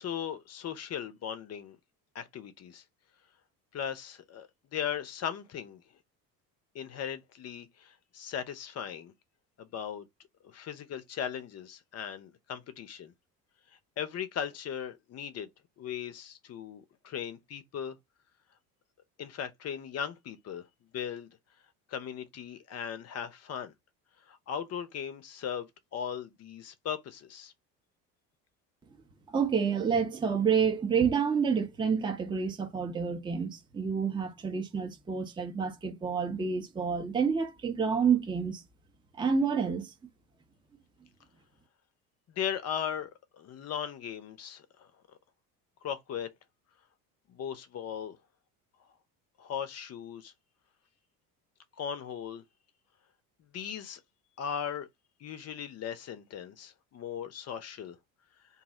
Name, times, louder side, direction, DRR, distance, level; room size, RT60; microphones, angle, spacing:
voice 1, 0.0-1.8 2.1-2.8 3.7-5.8 6.7-9.1 9.6-10.1 10.4-13.1 14.0-15.5 15.8-18.0 19.2-20.6 20.9-21.3 21.9-23.7 24.3-27.5 42.3-43.1 43.4-44.9 45.8-46.3 47.3-48.2 49.4-50.3 51.8-52.4 53.5-54.0 54.4-54.9 55.2-58.0, left 8 dB, 30° left, 0.6 m, -38 dB
voice 2, 29.3-38.6 39.2-39.9, right 6 dB, 10° right, 0.6 m, -29 dB
2.6 x 2.0 x 3.7 m
hypercardioid pair, 65°, 49 cm